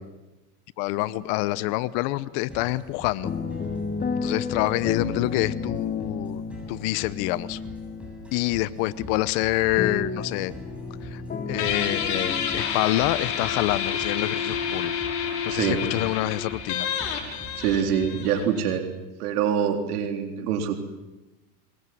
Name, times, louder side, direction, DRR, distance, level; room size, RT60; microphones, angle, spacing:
voice 1, 0.8-3.3 4.2-6.4 6.7-7.6 8.3-10.5 11.0-14.9 15.5-16.9, left 18 dB, 50° left, 18 dB, 0.9 m, -27 dB
sound 1, 1.2-1.7 2.0-14.8, left 4 dB, 20° left, 1.9 m, -34 dB
sound 2, 2.5-18.5, equal, ahead, 7.6 m, -44 dB
Guitar, 11.6-18.8, left 7 dB, 85° left, 5.6 m, -29 dB
voice 2, 15.5-15.8 17.6-18.9 19.2-20.7, right 8 dB, 80° right, 4 dB, 4.0 m, -25 dB
25.5 x 22.0 x 7.8 m, 1.0 s
supercardioid pair, 135°, 45 cm